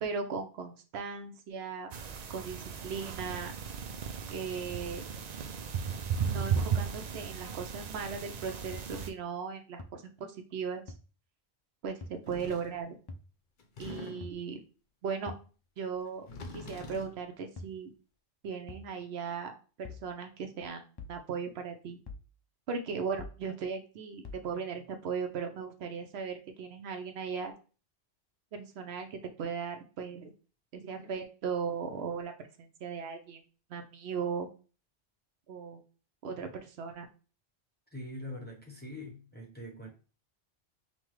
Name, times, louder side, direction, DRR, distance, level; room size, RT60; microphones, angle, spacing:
voice 1, 0.0-1.9 2.3-3.6 4.3-5.0 6.2-10.8 11.8-13.0 13.8-14.6 15.0-15.3 15.8-17.9 18.4-20.8 21.1-22.0 22.7-27.5 28.5-30.3 30.7-33.4 33.7-34.5 35.5-35.8 36.2-37.1, right 5 dB, 75° right, 0.9 m, -37 dB
sound 1, 1.9-9.1, right 6 dB, 55° right, 0.5 m, -35 dB
sound 2, 8.7-8.8 9.8-9.9 10.9-11.0 12.0-12.2 13.1-13.3 14.2-14.4 15.3-15.5 16.4-16.6 17.6-17.8 18.7-18.9 19.8-20.1 21.0-21.2 22.1-22.3 23.2-23.4 24.2-24.5, left 2 dB, 40° left, 0.4 m, -44 dB
sound 3, 12.3-12.8 13.6-14.4 16.1-17.2, left 2 dB, 55° left, 0.8 m, -45 dB
voice 2, 37.9-39.9, left 1 dB, 10° left, 0.7 m, -43 dB
5.5 x 2.2 x 3.1 m
omnidirectional pair, 1.1 m